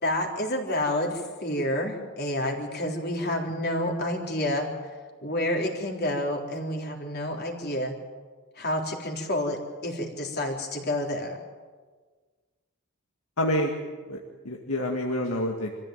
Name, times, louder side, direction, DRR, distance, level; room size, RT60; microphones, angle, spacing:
voice 1, 0.0-4.7 5.2-8.0 8.6-11.4, left 1 dB, 45° left, 1 dB, 3.8 m, -29 dB
voice 2, 13.4-13.7 14.1-14.2 14.4-15.7, left 1 dB, 75° left, 0 dB, 2.1 m, -27 dB
25.5 x 15.0 x 9.2 m, 1.4 s
head